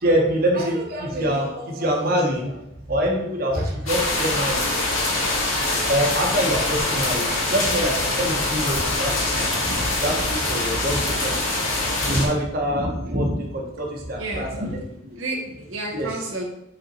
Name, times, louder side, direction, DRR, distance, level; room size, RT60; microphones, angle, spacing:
voice 1, 0.0-4.8 5.9-11.6 12.0-14.8 15.9-16.1, equal, 45° right, 0 dB, 1.1 m, -25 dB
sound 1, 3.9-12.2, left 2 dB, 80° left, 1.9 m, -24 dB
voice 2, 14.2-14.7 15.2-16.4, right 1 dB, 70° right, -1 dB, 0.9 m, -31 dB
5.3 x 4.3 x 4.3 m, 0.83 s
head